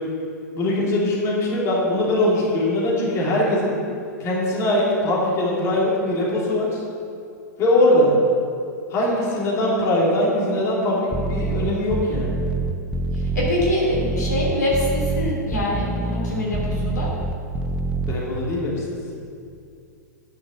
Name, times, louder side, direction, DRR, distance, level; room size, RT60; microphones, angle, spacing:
voice 1, 0.5-3.7 4.2-6.8 7.6-8.1 8.9-12.4 18.1-18.8, left 1 dB, 30° left, -5 dB, 3.2 m, -21 dB
sound 1, 11.1-18.1, right 2 dB, 10° right, 0.7 m, -25 dB
voice 2, 13.1-17.1, left 1 dB, 75° left, -4 dB, 2.9 m, -24 dB
10.5 x 6.3 x 7.1 m, 2.4 s
figure-of-eight pair, 100°, 9 cm